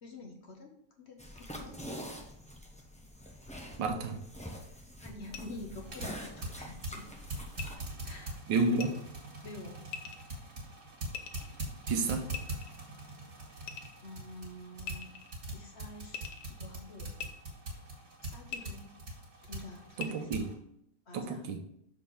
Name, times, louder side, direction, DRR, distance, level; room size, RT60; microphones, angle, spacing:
voice 1, 0.0-1.9 5.0-7.0 8.0-8.4 9.4-9.8 14.0-15.1 15.5-17.1 18.2-18.9 19.4-20.3 21.1-21.4, left 2 dB, 45° left, 2 dB, 1.0 m, -48 dB
sound 1, 1.2-7.8, equal, 10° left, 0.4 m, -45 dB
voice 2, 3.8-4.2 8.5-9.0 11.9-12.3 20.0-20.5 21.1-21.6, right 3 dB, 80° right, 6 dB, 1.6 m, -30 dB
sound 2, 5.3-5.4 7.6-7.7 8.8-8.9 9.9-10.2 11.1-11.6 12.3-12.8 13.7-14.0 14.8-15.4 16.1-16.5 17.2-17.3 18.5-18.6 20.0-20.1, left 7 dB, 65° left, 1.2 m, -41 dB
sound 3, 5.8-20.5, right 1 dB, 60° right, 2.5 m, -43 dB
6.4 x 4.5 x 5.4 m, 0.74 s
omnidirectional pair, 1.9 m